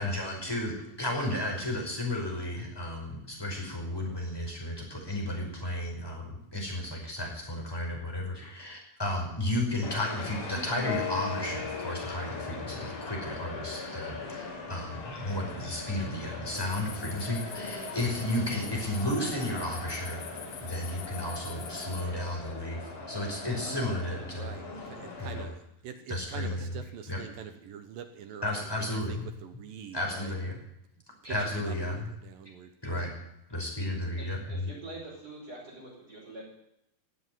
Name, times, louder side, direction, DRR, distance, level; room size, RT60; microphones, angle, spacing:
voice 1, 0.0-20.2 20.6-24.6 25.2-25.5 26.1-26.7 27.1-27.2 28.4-29.3 29.9-30.6 31.2-32.1 32.8-33.1 33.5-34.7, left 1 dB, 5° left, -1 dB, 4.7 m, -33 dB
sound 1, 9.8-25.4, left 3 dB, 50° left, 4.9 m, -41 dB
sound 2, 10.8-14.8, left 8 dB, 85° left, 3.4 m, -39 dB
sound 3, 16.5-22.1, left 8 dB, 65° left, 1.6 m, -45 dB
voice 2, 24.3-30.7 31.2-33.1, right 8 dB, 70° right, 8 dB, 2.3 m, -45 dB
voice 3, 34.2-36.4, right 2 dB, 20° right, -7 dB, 5.6 m, -44 dB
18.5 x 8.3 x 9.5 m, 0.81 s
omnidirectional pair, 4.9 m